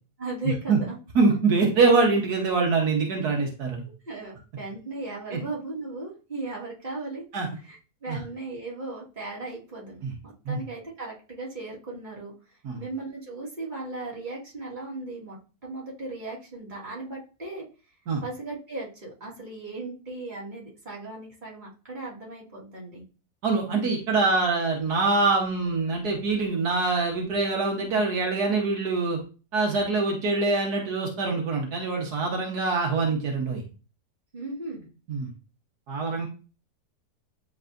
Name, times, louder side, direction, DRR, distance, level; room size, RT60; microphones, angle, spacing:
voice 1, 0.2-1.0 4.0-7.2 7.6-12.3 12.8-17.7 18.2-23.0 34.3-34.9, right 2 dB, 30° right, -5 dB, 2.5 m, -37 dB
voice 2, 1.2-3.8 5.3-5.4 7.3-7.5 8.1-8.2 10.0-10.1 10.5-10.6 12.6-12.8 18.1-18.2 23.4-29.2 29.5-33.6 35.1-35.3 35.9-36.3, right 3 dB, 80° right, 0 dB, 1.8 m, -24 dB
10.0 x 4.0 x 2.6 m, 0.34 s
omnidirectional pair, 1.6 m